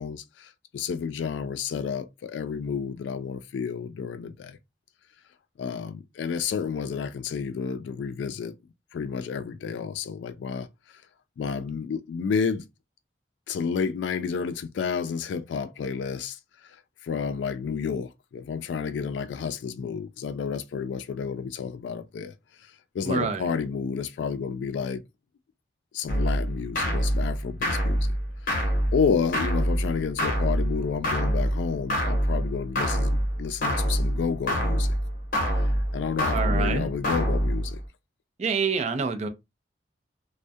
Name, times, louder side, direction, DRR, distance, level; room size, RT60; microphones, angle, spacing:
voice 1, 0.0-4.6 5.6-8.5 8.9-10.7 11.4-12.7 13.5-16.4 17.0-22.3 22.9-25.0 25.9-28.2 28.5-35.0 35.5-37.8, left 6 dB, 85° left, 0.3 m, -30 dB
voice 2, 23.0-23.4 36.3-36.9 38.4-39.3, right 5 dB, 40° right, 0.4 m, -27 dB
sound 1, 26.1-37.8, equal, 50° left, 0.8 m, -26 dB
2.2 x 2.1 x 2.6 m
head